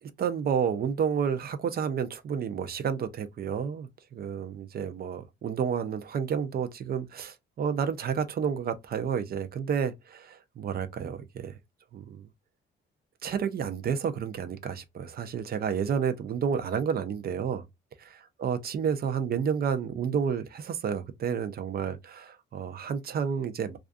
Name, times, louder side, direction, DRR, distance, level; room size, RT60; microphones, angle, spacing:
voice 1, 0.0-11.5 11.9-12.3 13.2-17.6 18.4-23.8, right 7 dB, 50° right, 0.5 m, -30 dB
2.4 x 2.3 x 2.4 m
cardioid pair, 90°, 20 cm